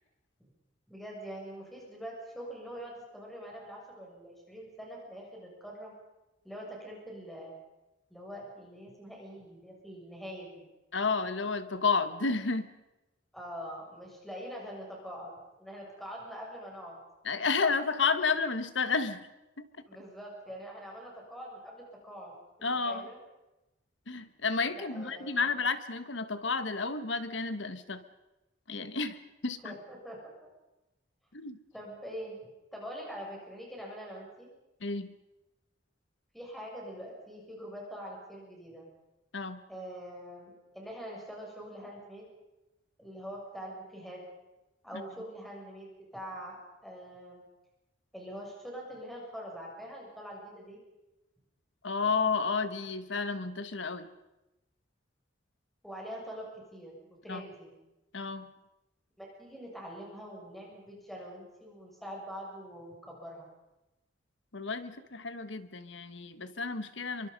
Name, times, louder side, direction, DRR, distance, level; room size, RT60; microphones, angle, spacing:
voice 1, 0.9-5.9 6.4-7.5 8.1-10.6 13.3-15.3 15.6-17.0 19.9-23.2 24.7-25.5 29.6-30.2 31.7-34.5 36.3-38.9 39.7-42.3 43.0-44.2 44.8-47.4 48.1-50.8 55.8-57.7 59.2-63.5, equal, ahead, -2 dB, 6.9 m, -44 dB
voice 2, 10.9-12.7 17.2-19.3 19.6-19.7 22.6-23.0 24.1-28.0 28.7-29.2 29.4-29.7 31.3-31.6 34.8-35.1 39.3-39.6 44.9-45.0 51.8-54.1 57.3-57.4 58.1-58.5 64.5-67.3, left 4 dB, 80° left, 11 dB, 1.4 m, -31 dB
26.5 x 24.0 x 5.4 m, 0.98 s
head